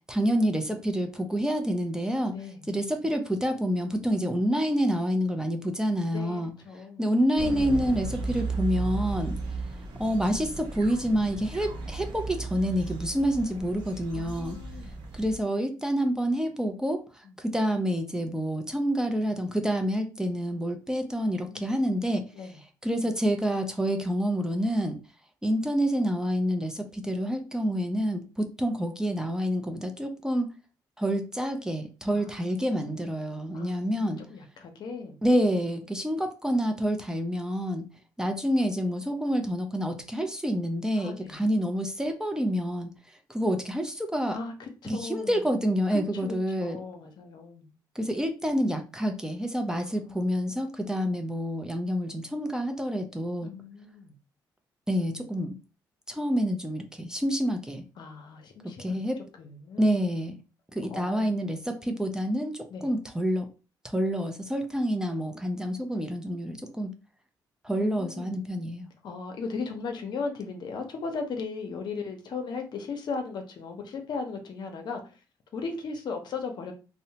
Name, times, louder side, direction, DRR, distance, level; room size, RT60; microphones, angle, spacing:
voice 1, 0.1-2.4 2.7-6.5 7.0-9.4 10.0-14.6 15.1-22.2 22.8-25.0 25.4-30.5 31.0-34.2 35.2-37.9 38.2-42.9 43.3-44.4 44.8-46.8 48.0-53.5 54.9-55.6 56.1-57.8 58.6-59.2 59.8-60.4 60.7-63.5 63.8-66.9 67.6-68.9, equal, 10° right, 0.4 m, -28 dB
voice 2, 2.3-2.8 6.1-7.1 14.1-15.1 17.2-17.4 21.5-22.6 32.1-33.0 33.5-35.2 41.0-41.4 44.3-45.4 45.9-47.7 49.7-50.3 53.4-54.2 58.0-59.0 59.4-60.0 60.9-61.4 62.7-62.9 67.8-68.3 69.0-75.1 75.5-76.7, left 4 dB, 65° left, 0.6 m, -37 dB
sound 1, 7.3-15.4, right 4 dB, 80° right, 0.7 m, -35 dB
2.7 x 2.1 x 2.8 m
cardioid pair, 75°, 8 cm